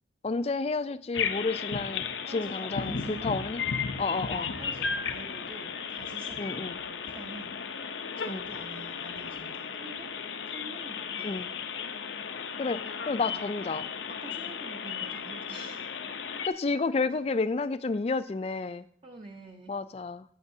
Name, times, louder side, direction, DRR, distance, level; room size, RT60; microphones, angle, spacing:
voice 1, 0.2-3.6 4.0-4.5 6.4-6.8 8.3-8.5 11.2-11.5 12.6-13.8 16.5-18.8 19.7-20.2, left 3 dB, 35° left, 14 dB, 0.3 m, -31 dB
sound 1, 1.1-16.5, left 6 dB, 80° left, 0.7 m, -35 dB
voice 2, 2.2-3.4 4.2-7.6 8.2-10.1 10.5-11.4 13.2-13.8 14.1-15.8 18.4-18.7 19.0-19.7, right 2 dB, 30° right, 2 dB, 0.7 m, -47 dB
14.0 x 8.5 x 2.7 m, 0.69 s
head